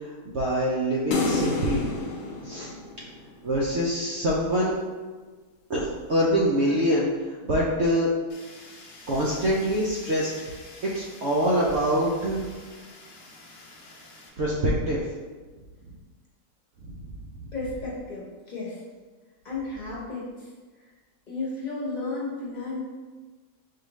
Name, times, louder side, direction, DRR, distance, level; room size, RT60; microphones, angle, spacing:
voice 1, 0.0-1.8 2.4-2.7 3.4-4.8 5.7-7.1 7.4-8.1 9.1-10.5 10.8-12.5 14.4-15.0 16.8-17.3, equal, 70° right, -5 dB, 0.6 m, -25 dB
sound 1, 1.1-3.5, left 3 dB, 85° left, 1.2 m, -29 dB
Fire, 8.3-14.3, left 2 dB, 60° left, 0.9 m, -48 dB
voice 2, 17.5-18.8 19.4-20.5 21.3-22.8, left 3 dB, 30° left, -6 dB, 1.1 m, -33 dB
4.7 x 2.5 x 3.0 m, 1.4 s
omnidirectional pair, 1.7 m